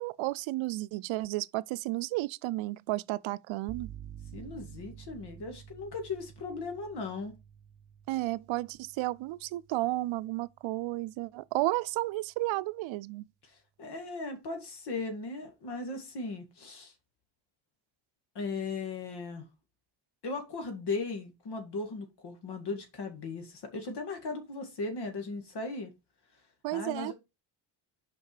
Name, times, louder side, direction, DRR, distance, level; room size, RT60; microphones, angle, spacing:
voice 1, 0.0-3.9 8.1-13.3 26.6-27.1, right 18 dB, 85° right, 0.5 m, -32 dB
sound 1, 3.7-11.4, right 9 dB, 35° right, 0.8 m, -50 dB
voice 2, 4.3-7.3 13.4-16.9 18.4-19.4 20.2-25.9 26.7-27.1, left 3 dB, 60° left, 2.1 m, -37 dB
5.6 x 5.2 x 4.9 m
cardioid pair, 125°, 45 cm